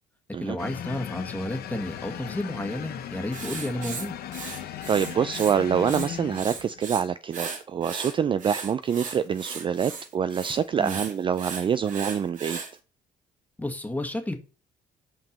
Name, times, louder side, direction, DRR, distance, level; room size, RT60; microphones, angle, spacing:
voice 1, 0.4-4.1 10.8-11.0 13.6-14.4, left 1 dB, 10° left, 1.5 m, -31 dB
sound 1, 0.6-6.9, left 10 dB, 65° left, 0.9 m, -37 dB
Writing, 3.3-5.6 5.8-7.0 7.3-12.7, right 5 dB, 50° right, 1.7 m, -37 dB
voice 2, 4.9-12.6, right 7 dB, 30° right, 0.3 m, -26 dB
5.7 x 5.2 x 5.2 m
cardioid pair, 110°, 17 cm